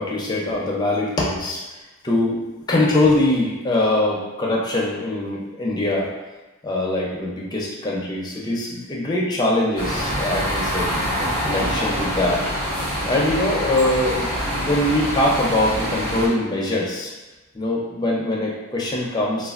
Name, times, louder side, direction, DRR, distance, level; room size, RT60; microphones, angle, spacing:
voice 1, 0.0-1.6 2.0-2.4 2.7-6.1 6.6-10.9 11.4-12.5 13.0-17.1 17.5-19.5, left 1 dB, 20° left, -4 dB, 0.5 m, -22 dB
sound 1, 9.8-16.3, equal, 45° right, 1.0 m, -25 dB
3.2 x 2.2 x 2.4 m, 1.1 s
head